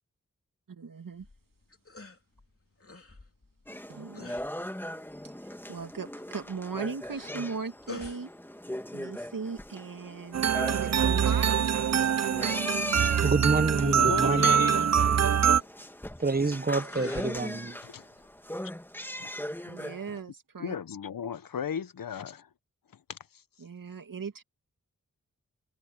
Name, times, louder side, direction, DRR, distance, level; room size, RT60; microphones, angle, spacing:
voice 1, 0.7-1.3 3.9-4.4 5.2-8.3 8.9-11.9 19.6-20.8 23.6-24.4, right 5 dB, 80° right, 2.4 m, -38 dB
sound 1, 1.1-19.8, left 3 dB, 45° left, 3.3 m, -53 dB
sound 2, 3.7-20.2, left 1 dB, 5° left, 1.9 m, -39 dB
sound 3, 10.3-15.6, right 8 dB, 55° right, 0.5 m, -24 dB
voice 2, 12.9-14.9 16.2-17.8, right 3 dB, 30° right, 1.1 m, -28 dB
voice 3, 13.8-14.9 17.8-18.1 19.2-19.3 20.6-22.5 23.1-23.2, left 7 dB, 90° left, 0.9 m, -35 dB
cardioid pair, 40°, 33 cm